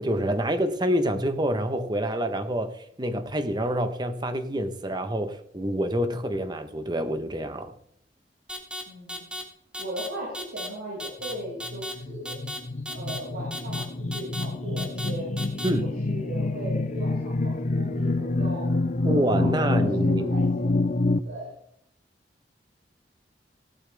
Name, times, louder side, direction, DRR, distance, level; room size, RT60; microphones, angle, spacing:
voice 1, 0.0-2.7 3.0-7.7 15.6-15.9 19.0-20.3, equal, 25° right, 8 dB, 1.2 m, -27 dB
sound 1, 8.5-8.8 9.1-9.4 9.7-10.1 10.3-10.7 11.0-11.3 11.6-11.9 12.3-12.6 12.9-13.2 13.5-13.8 14.1-14.4 14.8-15.1 15.4-15.7, equal, 5° right, 1.8 m, -34 dB
voice 2, 8.9-9.2 9.8-12.4 12.9-15.3 15.7-18.7 19.1-20.8 21.2-21.5, right 1 dB, 75° right, -6 dB, 6.4 m, -38 dB
sound 2, 11.4-21.2, left 2 dB, 45° left, 0.6 m, -27 dB
17.5 x 11.5 x 3.6 m, 0.73 s
head